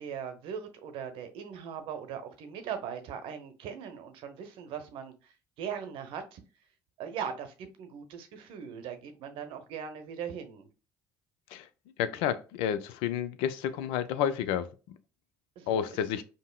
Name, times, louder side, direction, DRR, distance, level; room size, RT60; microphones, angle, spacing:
voice 1, 0.0-5.3 5.6-6.4 7.0-10.7 15.6-16.0, right 7 dB, 60° right, 0.7 m, -40 dB
voice 2, 12.0-14.7 15.7-16.2, left 9 dB, 70° left, 0.4 m, -30 dB
5.2 x 2.0 x 2.2 m
hypercardioid pair, 60°, 10 cm